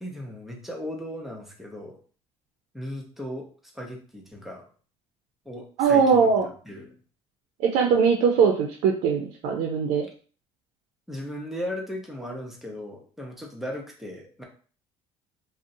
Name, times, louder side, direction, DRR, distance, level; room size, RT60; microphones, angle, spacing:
voice 1, 0.0-2.0 2.7-3.5 3.7-4.7 5.4-6.3 6.7-7.0 11.1-14.4, equal, ahead, -1 dB, 0.6 m, -36 dB
voice 2, 5.8-6.5 7.6-10.1, right 6 dB, 75° right, 1 dB, 0.4 m, -21 dB
2.5 x 2.0 x 2.6 m, 0.41 s
cardioid pair, 120°, 12 cm